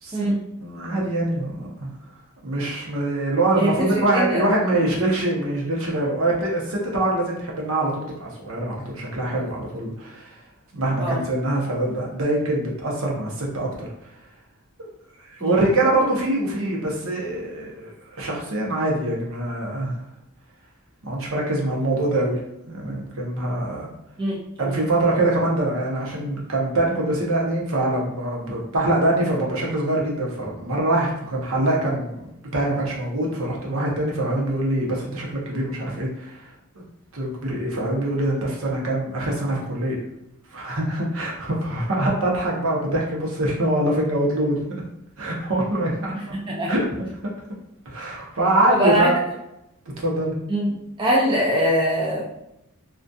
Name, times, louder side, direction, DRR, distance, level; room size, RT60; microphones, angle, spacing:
voice 1, 0.6-1.9 2.4-10.3 10.7-13.9 15.4-20.0 21.0-22.4 22.7-23.9 24.6-36.4 37.1-40.0 40.5-44.8 45.2-46.1 46.7-46.9 47.9-49.2 50.0-50.3, right 1 dB, 65° right, -3 dB, 0.7 m, -24 dB
voice 2, 3.6-4.4 11.0-11.2 15.4-15.6 24.2-24.8 46.3-46.7 48.7-49.1 50.5-50.7 51.0-52.3, right 1 dB, 20° right, -4 dB, 0.3 m, -22 dB
2.6 x 2.3 x 2.3 m, 0.84 s
head